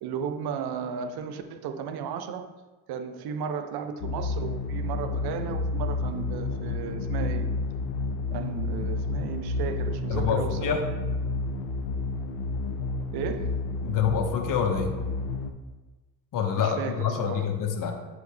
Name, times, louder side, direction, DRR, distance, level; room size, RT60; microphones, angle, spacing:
voice 1, 0.0-2.5 2.9-7.5 8.3-10.8 13.1-13.6 16.6-17.4, right 7 dB, 60° right, 8 dB, 0.8 m, -34 dB
sound 1, 4.0-15.5, left 3 dB, 70° left, 0.8 m, -30 dB
voice 2, 10.1-10.8 13.8-14.9 16.3-17.9, left 7 dB, 45° left, 3 dB, 1.1 m, -26 dB
8.1 x 7.9 x 2.3 m, 1.2 s
hypercardioid pair, 55°, 43 cm